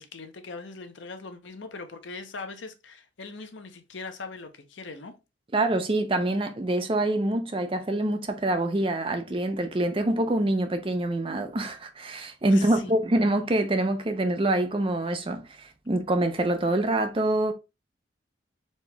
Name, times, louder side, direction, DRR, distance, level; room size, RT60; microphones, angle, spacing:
voice 1, 0.0-5.1 12.5-13.1, left 4 dB, 75° left, 0.7 m, -41 dB
voice 2, 5.5-17.5, right 1 dB, 30° right, 0.6 m, -25 dB
4.3 x 2.9 x 3.3 m
head